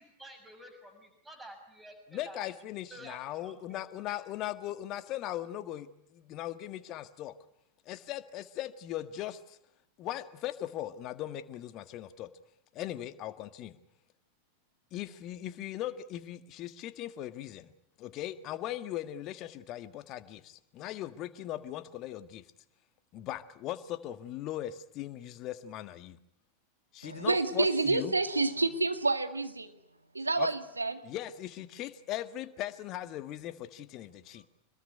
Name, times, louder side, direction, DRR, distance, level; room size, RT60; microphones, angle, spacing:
voice 1, 0.2-2.5 2.9-3.8 4.1-4.2, right 1 dB, 10° right, 5 dB, 6.5 m, -50 dB
voice 2, 2.1-7.4 7.8-9.6 10.0-12.3 12.7-13.8 14.9-17.7 18.0-22.4 23.1-26.2 26.9-28.1 30.4-30.5 31.0-34.5, left 13 dB, 35° left, 12 dB, 1.6 m, -39 dB
voice 3, 27.0-29.7 30.1-31.0, right 3 dB, 80° right, 8 dB, 2.1 m, -29 dB
26.5 x 21.0 x 9.8 m, 0.78 s
figure-of-eight pair, 90°, 0 cm